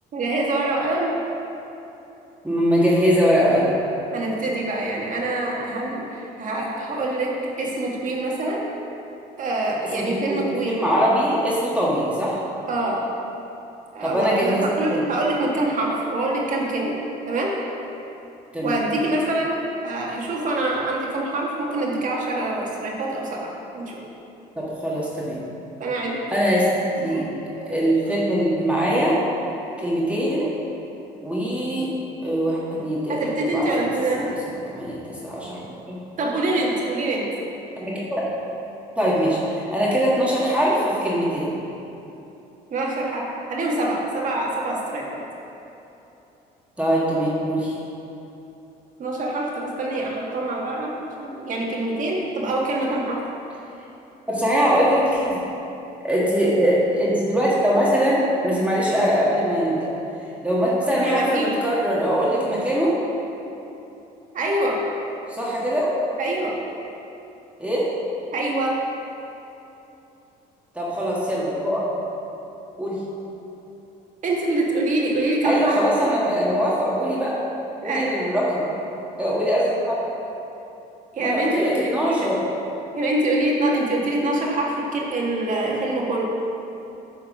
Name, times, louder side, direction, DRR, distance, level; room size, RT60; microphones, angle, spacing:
voice 1, 0.1-1.1 4.1-7.3 7.6-8.6 9.4-10.8 12.7-13.0 13.9-17.0 17.3-17.6 18.6-24.0 25.8-26.5 27.0-27.8 33.1-34.3 36.2-37.3 42.7-45.2 49.0-53.2 60.9-61.5 64.3-64.8 66.2-66.5 68.3-68.8 74.2-75.8 77.8-78.1 81.1-82.3 82.9-86.2, right 2 dB, 50° right, -2 dB, 1.8 m, -25 dB
voice 2, 2.4-3.7 10.1-12.4 14.0-14.6 14.9-15.1 18.5-18.8 24.6-25.4 26.3-26.7 27.0-27.3 27.7-29.2 29.8-30.5 31.2-31.9 32.2-33.7 34.7-35.6 35.9-36.0 37.8-38.2 39.0-41.5 46.8-47.7 54.3-55.4 56.0-59.9 60.4-63.0 65.3-66.0 67.6-67.9 70.8-71.9 72.8-73.0 75.4-77.4 77.8-78.7 79.2-80.0 81.2-82.4, equal, 5° right, -6 dB, 1.8 m, -22 dB
9.8 x 4.6 x 6.2 m, 2.9 s
cardioid pair, 110°, 17 cm